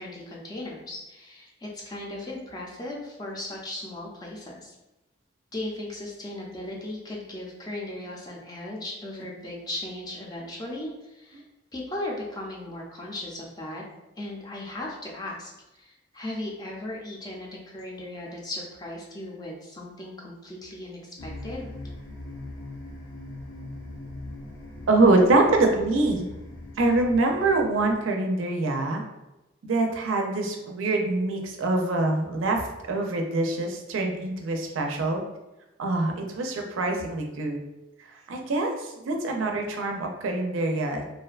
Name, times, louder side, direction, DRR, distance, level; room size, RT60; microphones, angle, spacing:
voice 1, 0.0-4.8 5.5-11.4 11.7-13.8 14.2-21.7, left 1 dB, 20° left, -2 dB, 0.4 m, -37 dB
sound 1, 21.2-28.0, left 2 dB, 80° left, 0.6 m, -40 dB
voice 2, 24.9-26.3 26.8-29.0 29.6-32.6 32.9-35.2 35.8-37.6 38.1-41.0, right 2 dB, 90° right, 3 dB, 0.4 m, -24 dB
2.5 x 2.1 x 2.3 m, 0.99 s
head